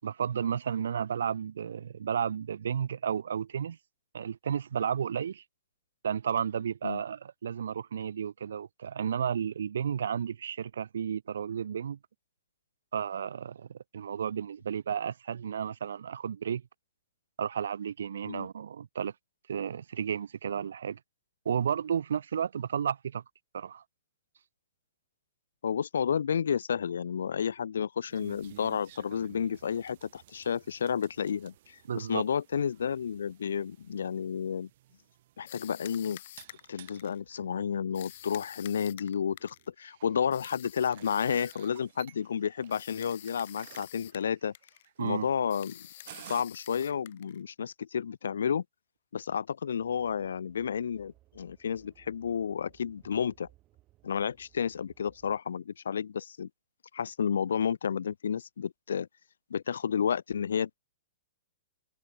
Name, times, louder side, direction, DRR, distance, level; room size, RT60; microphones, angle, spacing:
voice 1, 0.0-3.8 4.1-5.4 6.0-12.0 12.9-16.6 17.4-19.1 19.5-21.0 21.4-23.2 23.5-23.8 31.9-32.2 45.0-45.3, right 8 dB, 85° right, 0.8 m, -32 dB
voice 2, 25.6-34.7 35.4-36.2 36.7-44.5 45.0-45.9 46.3-48.6 49.1-53.5 54.0-56.5 56.9-59.1 59.5-60.8, left 7 dB, 90° left, 0.5 m, -31 dB
sound 1, 28.1-46.4, right 14 dB, 50° right, 5.3 m, -55 dB
sound 2, 35.5-37.2 37.9-39.7 40.3-41.7 42.7-44.3 44.5-44.9 45.5-47.4, left 13 dB, 50° left, 2.3 m, -49 dB
sound 3, 49.8-55.4, right 16 dB, 25° right, 5.2 m, -63 dB
hypercardioid pair, 160°, 0 cm